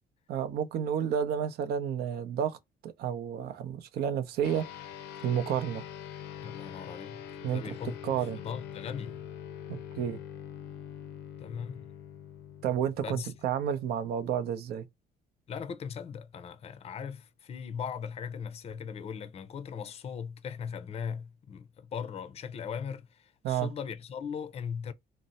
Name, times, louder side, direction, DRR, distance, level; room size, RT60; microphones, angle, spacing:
voice 1, 0.3-2.6 2.8-4.7 5.2-5.9 7.4-7.7 8.0-8.4 9.7-10.2 12.6-14.9 23.4-23.7, right 9 dB, 70° right, 0.6 m, -31 dB
sound 1, 4.4-14.2, left 9 dB, 85° left, 0.6 m, -44 dB
voice 2, 6.4-7.2 7.5-9.2 11.4-11.8 13.0-13.3 15.5-24.9, left 7 dB, 35° left, 0.5 m, -39 dB
2.6 x 2.1 x 3.9 m
cardioid pair, 110°, 17 cm